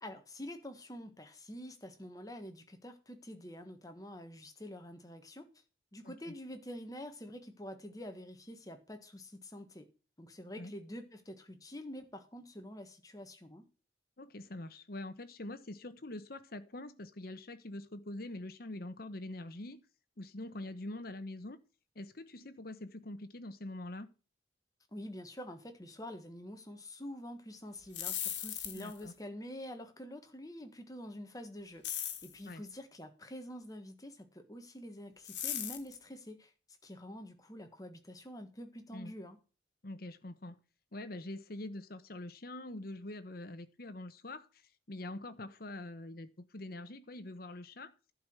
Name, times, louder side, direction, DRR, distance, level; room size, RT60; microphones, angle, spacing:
voice 1, 0.0-5.5 5.9-9.8 10.2-13.6 24.9-36.5 36.8-39.4, left 1 dB, 20° left, 1.4 m, -47 dB
voice 2, 14.2-19.8 20.2-21.6 21.9-24.1 28.7-29.1 32.4-32.6 38.9-39.1 39.8-40.6 40.9-44.5 44.9-47.9, left 1 dB, 55° left, 1.0 m, -44 dB
sound 1, 27.8-29.0 31.8-32.4 35.2-35.9, left 10 dB, 70° left, 1.7 m, -38 dB
11.0 x 4.9 x 7.9 m
head